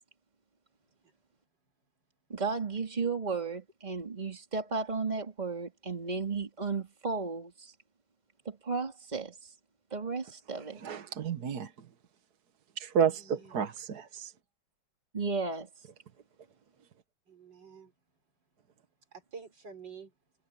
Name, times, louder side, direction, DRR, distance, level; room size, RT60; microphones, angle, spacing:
voice 1, 2.3-7.7 8.4-9.3 9.9-10.8 15.1-15.7, right 4 dB, 25° right, 3.0 m, -34 dB
voice 2, 10.8-11.7 12.8-14.3, right 7 dB, 65° right, 1.7 m, -31 dB
voice 3, 13.1-13.6 17.3-17.9 19.1-20.1, right 5 dB, 85° right, 4.7 m, -48 dB
omnidirectional pair, 1.9 m